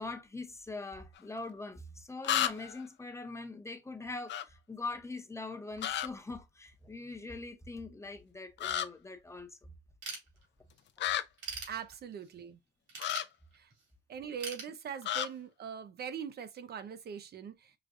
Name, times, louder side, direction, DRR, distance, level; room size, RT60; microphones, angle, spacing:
voice 1, 0.0-9.7, left 3 dB, 15° left, 0.7 m, -42 dB
sound 1, 1.2-1.3 2.2-2.8 4.3-4.4 5.8-6.1 8.6-8.9 11.0-11.2 13.0-13.2 15.0-15.3, left 11 dB, 65° left, 0.5 m, -31 dB
Ratchet pawl / Tools, 10.0-10.8 11.2-12.3 12.9-13.9 14.4-15.4, right 4 dB, 75° right, 2.3 m, -43 dB
voice 2, 11.7-12.6 13.5-13.7 14.1-17.7, right 7 dB, 55° right, 0.5 m, -42 dB
4.9 x 2.3 x 2.5 m
cardioid pair, 90°, 20 cm